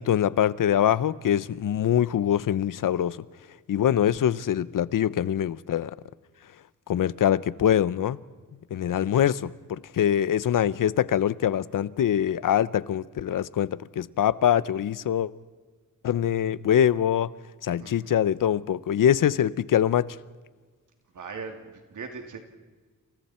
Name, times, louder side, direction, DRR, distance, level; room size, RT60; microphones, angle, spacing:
voice 1, 0.0-3.2 3.7-5.9 6.9-8.2 8.7-15.3 16.0-17.3 17.6-20.2, left 10 dB, 70° left, 0.8 m, -24 dB
voice 2, 17.8-18.1 21.1-22.4, right 5 dB, 65° right, 2.9 m, -39 dB
29.5 x 28.5 x 4.4 m
wide cardioid pair, 125°, 33 cm